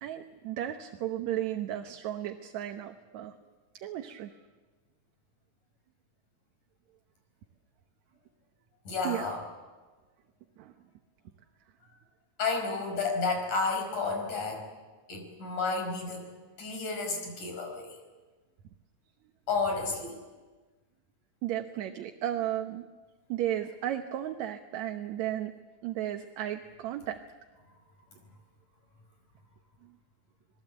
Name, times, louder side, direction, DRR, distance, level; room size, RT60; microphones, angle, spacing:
voice 1, 0.0-3.3 3.8-4.3 9.0-9.3 10.6-10.7 21.4-22.9 23.3-25.5 25.8-27.2, right 12 dB, 70° right, 6 dB, 2.2 m, -34 dB
voice 2, 8.9-9.4 12.4-14.7 15.1-16.3 16.6-18.0 19.5-20.2, left 4 dB, 80° left, 4 dB, 6.4 m, -31 dB
27.0 x 20.0 x 8.1 m, 1.3 s
omnidirectional pair, 3.5 m